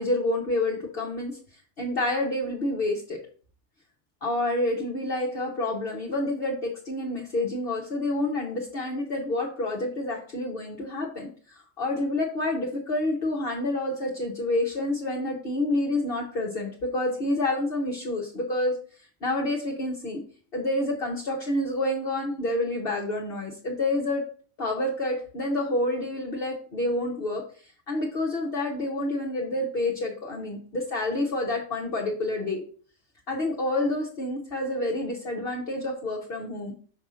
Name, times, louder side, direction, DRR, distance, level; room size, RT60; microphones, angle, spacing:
voice 1, 0.0-1.4 1.8-3.2 4.2-18.8 19.2-20.2 20.5-24.2 24.6-32.6 33.3-36.7, left 1 dB, 50° left, -1 dB, 1.3 m, -28 dB
5.3 x 4.7 x 6.2 m, 0.43 s
omnidirectional pair, 1.3 m